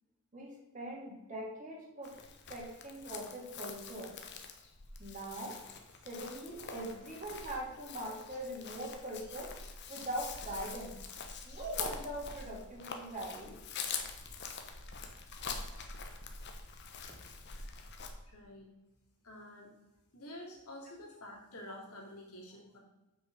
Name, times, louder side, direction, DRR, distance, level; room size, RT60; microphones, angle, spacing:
voice 1, 0.3-2.2 2.5-4.1 5.0-5.6 6.0-9.5 9.9-11.0 11.5-13.5, right 1 dB, 35° right, -2 dB, 2.4 m, -42 dB
Chirp tweet, 2.0-18.1, left 5 dB, 50° left, 1.0 m, -45 dB
voice 2, 18.3-18.7 19.2-19.7 20.1-22.8, left 1 dB, 90° left, -2 dB, 2.6 m, -49 dB
7.6 x 5.9 x 5.1 m, 1.0 s
head